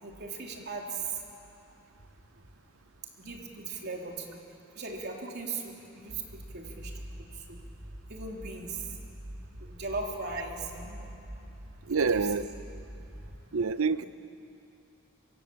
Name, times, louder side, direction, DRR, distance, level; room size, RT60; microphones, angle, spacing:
voice 1, 0.0-1.2 3.2-4.4 4.7-6.9 7.2-7.6 8.1-9.0 9.6-11.1 11.9-12.5, right 4 dB, 50° right, 0 dB, 3.3 m, -38 dB
sound 1, 6.1-13.4, equal, 35° right, 1.6 m, -45 dB
voice 2, 11.9-12.5 13.5-14.0, right 4 dB, 70° right, 13 dB, 0.7 m, -27 dB
26.5 x 24.5 x 7.6 m, 2.8 s
head